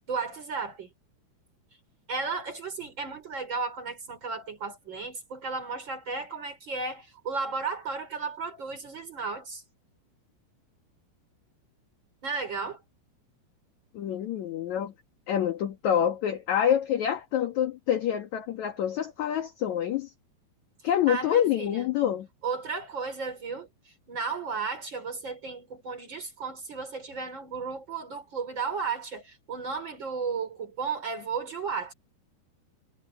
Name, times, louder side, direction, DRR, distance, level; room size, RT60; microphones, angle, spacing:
voice 1, 0.1-0.9 2.1-9.6 12.2-12.8 21.1-21.9 22.4-23.7 24.1-31.9, right 5 dB, 25° right, 4.5 m, -34 dB
voice 2, 13.9-14.9 15.3-20.1 20.8-22.3, left 10 dB, 55° left, 2.2 m, -27 dB
omnidirectional pair, 5.2 m